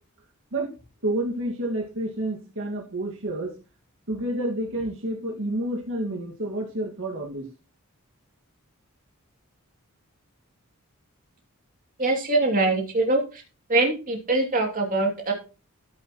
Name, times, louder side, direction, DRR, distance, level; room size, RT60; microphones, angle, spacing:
voice 1, 1.0-3.5 4.1-7.5, right 1 dB, 65° right, 0 dB, 2.0 m, -29 dB
voice 2, 12.0-13.4 13.7-15.3, right 2 dB, 40° right, 2 dB, 2.8 m, -23 dB
13.0 x 8.0 x 3.1 m, 0.32 s
head